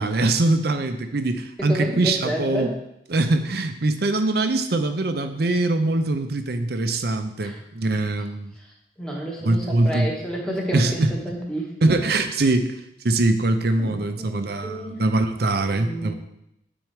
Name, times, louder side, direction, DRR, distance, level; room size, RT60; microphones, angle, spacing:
voice 1, 0.0-2.7 3.1-8.5 9.4-10.1 10.7-11.1 11.8-12.8 13.0-16.1, right 2 dB, 55° right, 8 dB, 0.6 m, -22 dB
voice 2, 1.6-2.7 7.4-7.6 9.0-12.0 13.8-15.0 15.5-16.1, right 1 dB, 5° left, -2 dB, 1.3 m, -30 dB
8.9 x 4.4 x 4.6 m, 0.80 s
head